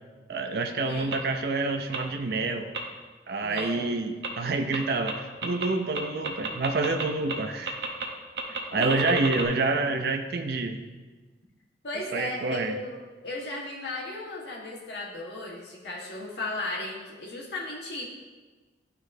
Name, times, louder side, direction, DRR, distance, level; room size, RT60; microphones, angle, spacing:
voice 1, 0.3-2.7 3.3-7.8 8.7-10.8 12.1-12.8, right 3 dB, 55° right, 5 dB, 0.4 m, -28 dB
sound 1, 1.1-1.2 1.9-2.0 2.7-2.8 3.6-3.7 4.2-4.3 4.7-4.8 5.1-5.2 5.4-5.7 5.9-7.0 7.3-7.4 7.7-8.0 8.4-9.5, right 4 dB, 75° right, 0.8 m, -30 dB
voice 2, 3.4-4.0 8.7-9.2 11.8-18.0, left 2 dB, 70° left, -3 dB, 1.4 m, -36 dB
11.0 x 4.0 x 2.6 m, 1.3 s
head